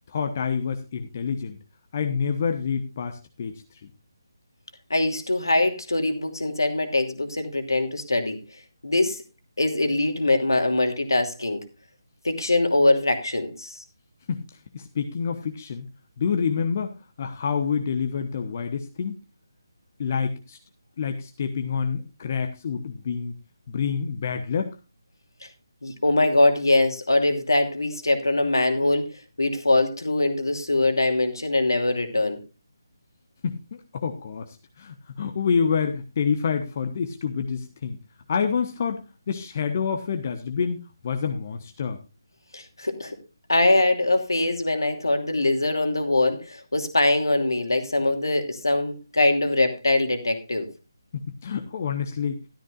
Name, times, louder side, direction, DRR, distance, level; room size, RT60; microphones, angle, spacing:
voice 1, 0.1-1.6 1.9-3.6 14.3-14.4 14.7-15.9 16.2-19.2 20.0-20.6 21.0-23.3 23.7-24.8 33.4-33.6 33.9-38.0 38.3-39.0 39.3-42.0 51.1-52.4, left 6 dB, 35° left, 6 dB, 1.1 m, -27 dB
voice 2, 4.9-8.4 8.8-9.2 9.6-11.6 12.2-13.8 25.8-29.1 29.4-32.4 42.5-43.1 43.5-50.7, left 2 dB, 70° left, 5 dB, 2.7 m, -22 dB
13.5 x 13.0 x 2.5 m, 0.28 s
figure-of-eight pair, 150°, 2 cm